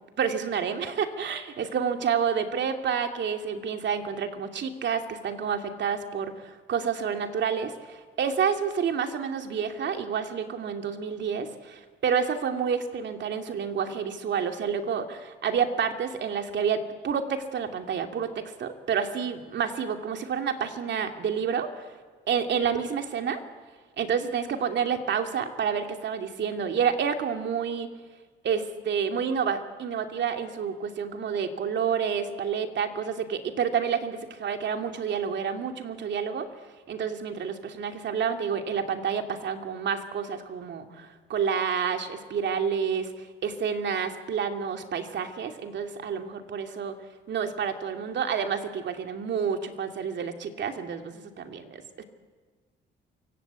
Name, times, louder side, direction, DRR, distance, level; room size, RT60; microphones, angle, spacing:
voice 1, 0.2-21.9 22.3-23.4 24.0-27.9 28.4-36.5 36.9-46.9 47.3-52.0, right 7 dB, 65° right, 5 dB, 2.9 m, -29 dB
28.0 x 24.5 x 8.4 m, 1.5 s
cardioid pair, 90°, 20 cm